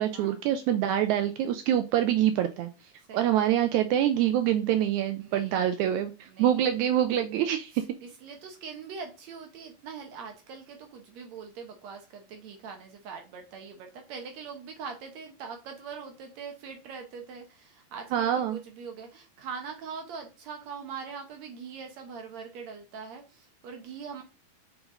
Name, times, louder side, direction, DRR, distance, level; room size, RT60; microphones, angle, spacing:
voice 1, 0.0-2.7 3.1-7.8 18.1-18.6, right 11 dB, 85° right, 1.7 m, -25 dB
voice 2, 3.1-3.4 5.2-6.0 6.3-6.5 8.0-24.2, right 5 dB, 65° right, 1.9 m, -42 dB
6.0 x 5.1 x 3.8 m
omnidirectional pair, 3.9 m